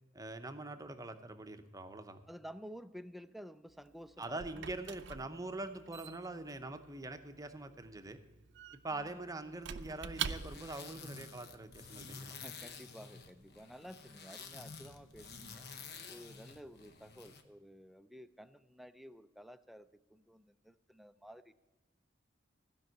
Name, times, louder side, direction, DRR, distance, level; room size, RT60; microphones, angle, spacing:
voice 1, 0.1-2.2 4.2-8.2 8.8-12.4, right 2 dB, 20° right, 9 dB, 0.7 m, -44 dB
voice 2, 2.3-4.7 5.3-5.5 8.9-9.3 12.3-15.7 16.1-21.5, equal, ahead, 12 dB, 0.3 m, -52 dB
Squeak / Wood, 3.7-10.9, right 8 dB, 60° right, 0.5 m, -45 dB
sound 1, 10.1-17.4, left 5 dB, 55° left, 0.9 m, -50 dB
15.0 x 5.3 x 7.7 m, 1.2 s
head